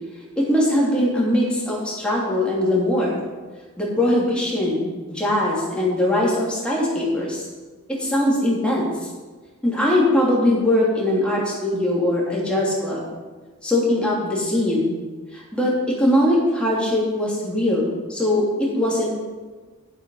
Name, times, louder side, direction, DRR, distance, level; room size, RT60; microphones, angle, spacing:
voice 1, 0.4-3.2 3.8-7.4 7.9-8.8 9.6-13.0 13.6-14.9 15.3-19.2, left 1 dB, 5° left, -5 dB, 2.8 m, -21 dB
9.4 x 8.3 x 5.5 m, 1.3 s
head